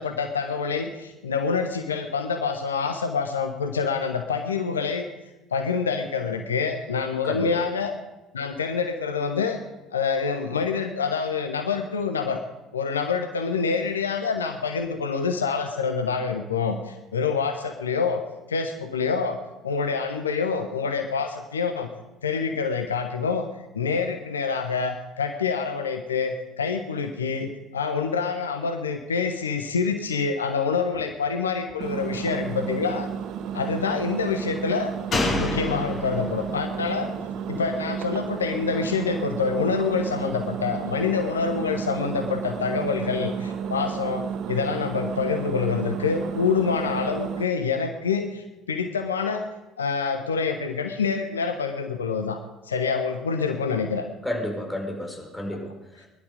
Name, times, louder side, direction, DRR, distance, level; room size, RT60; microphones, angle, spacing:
voice 1, 0.0-5.1 5.5-7.9 8.3-9.6 9.9-12.4 12.7-18.2 18.5-19.4 19.6-21.9 22.2-23.5 23.7-33.1 33.5-34.9 35.4-37.1 37.5-49.5 49.8-52.4 52.7-54.1, left 5 dB, 80° left, 7 dB, 1.0 m, -26 dB
voice 2, 7.2-7.6 54.2-56.1, left 1 dB, 5° left, 0 dB, 4.7 m, -32 dB
Engine, 31.8-47.4, right 7 dB, 50° right, 0.9 m, -32 dB
Slam, 35.1-38.6 38.9-39.0, left 2 dB, 40° left, 5.5 m, -30 dB
21.0 x 11.5 x 5.1 m, 1.0 s
figure-of-eight pair, 60°, 0 cm